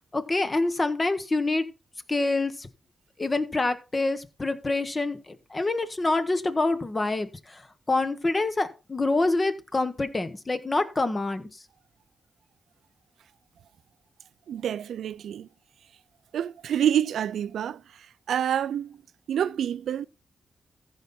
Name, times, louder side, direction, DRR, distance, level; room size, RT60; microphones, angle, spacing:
voice 1, 0.1-1.6 2.1-2.7 3.2-7.6 7.9-11.5, left 2 dB, 25° left, 1.3 m, -26 dB
voice 2, 14.5-15.5 16.3-19.0 19.3-20.0, right 9 dB, 85° right, 0.4 m, -28 dB
14.5 x 5.5 x 4.3 m
cardioid pair, 100°, 0 cm